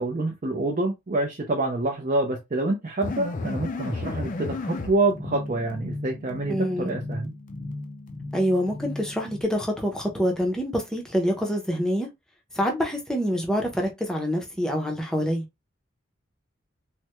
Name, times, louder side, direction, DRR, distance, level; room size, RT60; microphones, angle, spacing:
voice 1, 0.0-7.3, right 2 dB, 40° right, 0.5 m, -27 dB
sound 1, 3.0-9.4, left 2 dB, 40° left, 0.4 m, -34 dB
voice 2, 6.5-6.9 8.3-12.1 12.5-15.4, equal, 5° left, 0.6 m, -26 dB
3.3 x 2.1 x 2.9 m
head